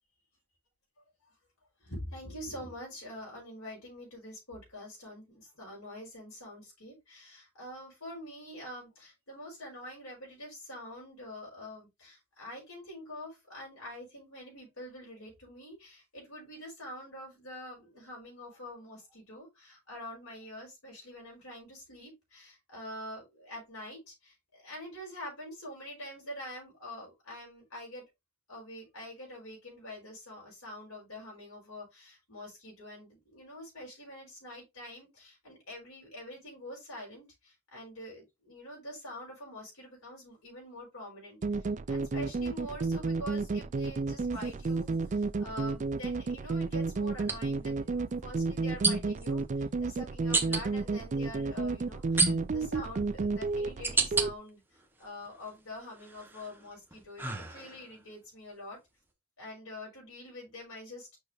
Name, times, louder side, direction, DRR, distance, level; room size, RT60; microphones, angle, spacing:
voice 1, 1.8-28.0 28.5-54.6 55.0-58.8 59.4-61.2, left 1 dB, 70° left, 5.1 m, -45 dB
sound 1, 41.4-54.3, right 3 dB, 35° right, 0.4 m, -32 dB
sound 2, 44.4-44.5 47.2-47.4 48.8-49.3 50.3-50.6 52.2-52.7 53.3-54.3 54.8-55.5 56.0-58.0, right 3 dB, 10° right, 0.9 m, -30 dB
6.6 x 5.1 x 3.2 m
head